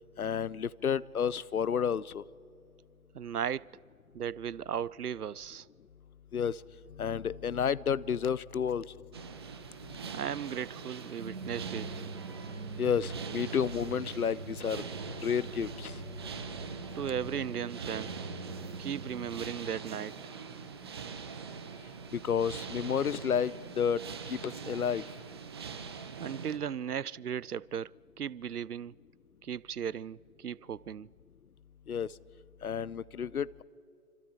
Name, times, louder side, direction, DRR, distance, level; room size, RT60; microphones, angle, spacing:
voice 1, 0.2-2.2 6.3-6.6 6.9-8.9 12.8-14.8 15.2-16.0 22.1-24.0 24.3-25.0 31.9-32.1 32.6-33.6, left 7 dB, 75° left, 0.7 m, -31 dB
voice 2, 3.1-3.7 4.1-5.7 10.1-11.9 17.0-18.2 18.8-20.1 26.2-27.9 28.2-29.0 29.4-31.1, right 8 dB, 90° right, 0.5 m, -36 dB
sound 1, 9.1-26.6, right 5 dB, 20° right, 0.7 m, -43 dB
sound 2, 11.2-19.3, right 2 dB, 50° right, 7.3 m, -43 dB
27.5 x 25.5 x 4.4 m
figure-of-eight pair, 140°, 44 cm